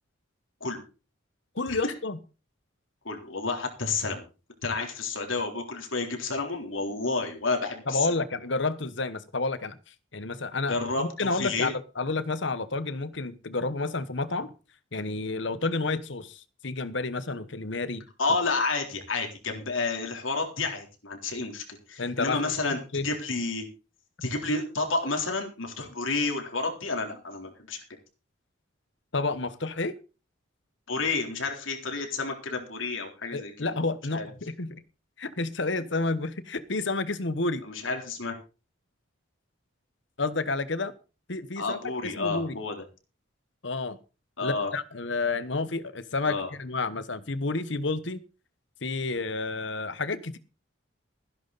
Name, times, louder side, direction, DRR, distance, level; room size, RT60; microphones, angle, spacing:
voice 1, 1.5-2.2 7.9-9.8 10.1-14.5 14.9-18.0 22.0-22.5 22.9-23.1 29.1-29.9 33.3-34.8 35.2-37.6 40.2-40.9 41.3-42.6 43.6-44.0 44.4-48.2 48.8-50.4, left 3 dB, 65° left, 14 dB, 1.2 m, -30 dB
voice 2, 3.0-4.2 4.6-8.1 10.7-11.7 18.2-23.7 24.2-27.8 30.9-33.7 34.1-34.3 37.6-38.4 41.6-42.8 44.4-44.7 46.2-46.5, left 3 dB, 80° left, 3 dB, 3.7 m, -30 dB
15.5 x 11.0 x 4.1 m, 0.33 s
head